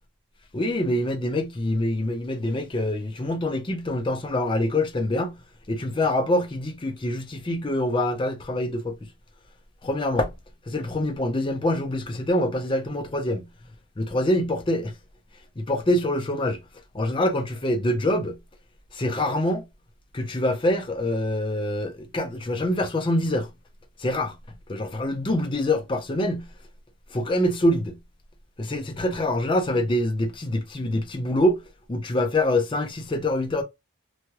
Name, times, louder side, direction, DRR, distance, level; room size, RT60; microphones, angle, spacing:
voice 1, 0.5-5.3 5.7-9.0 9.8-10.3 10.7-13.5 14.0-14.9 15.6-16.6 16.9-18.4 18.9-19.6 20.1-23.5 24.0-24.3 24.7-26.5 27.1-28.0 28.6-31.6 31.9-33.6, left 1 dB, 25° left, 0.4 m, -25 dB
3.0 x 2.2 x 2.8 m
head